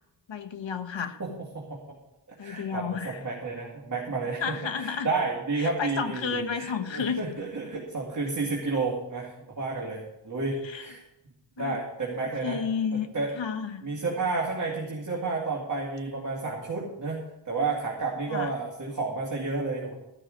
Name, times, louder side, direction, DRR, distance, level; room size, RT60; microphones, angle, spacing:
voice 1, 0.3-1.2 2.4-3.2 4.4-5.1 5.6-7.2 10.6-10.9 11.6-11.7 12.4-13.1 13.3-13.8 18.3-18.5, left 6 dB, 85° left, 7 dB, 1.2 m, -31 dB
voice 2, 1.5-2.0 2.3-11.0 11.6-12.6 12.9-13.3 13.8-19.9, right 3 dB, 45° right, -4 dB, 2.5 m, -31 dB
13.0 x 6.4 x 7.9 m, 0.91 s
wide cardioid pair, 120°, 44 cm